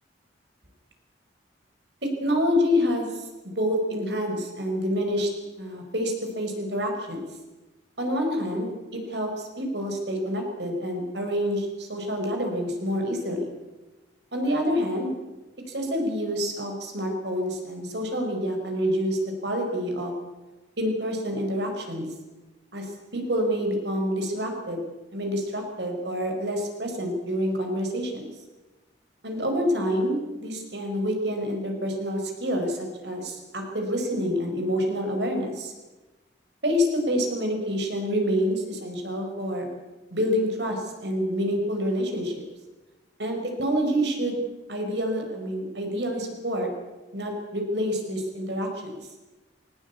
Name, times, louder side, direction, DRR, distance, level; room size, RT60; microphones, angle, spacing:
voice 1, 2.2-5.3 5.6-7.3 8.0-13.5 14.3-15.1 15.7-20.1 20.8-22.1 22.7-24.8 25.1-28.2 29.2-35.7 36.6-39.6 40.1-42.4 43.2-44.4 44.7-46.7 47.1-49.0, equal, 70° right, 3 dB, 5.0 m, -27 dB
21.5 x 19.0 x 8.4 m, 1.1 s
head